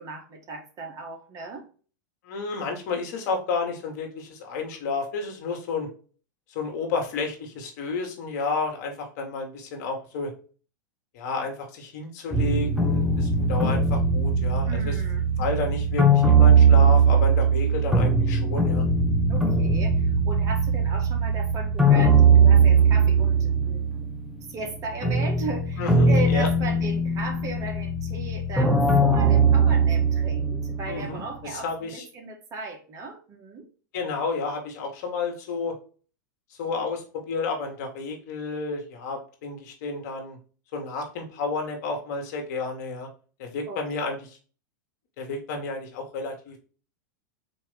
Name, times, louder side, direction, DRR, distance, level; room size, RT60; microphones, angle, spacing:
voice 1, 0.0-1.6 14.6-15.2 19.3-24.0 24.5-33.7 43.7-44.1, right 3 dB, 35° right, 3 dB, 1.5 m, -36 dB
voice 2, 2.2-5.9 6.5-10.3 11.1-15.0 15.4-18.8 25.8-26.5 30.8-32.0 33.9-35.8 36.5-40.4 40.7-43.1 43.4-44.3 45.2-46.6, left 4 dB, 60° left, 2 dB, 1.6 m, -31 dB
sound 1, 12.3-24.3 24.7-31.1, right 3 dB, 5° right, 0.8 m, -20 dB
4.4 x 3.0 x 3.4 m, 0.39 s
hypercardioid pair, 100°, 10 cm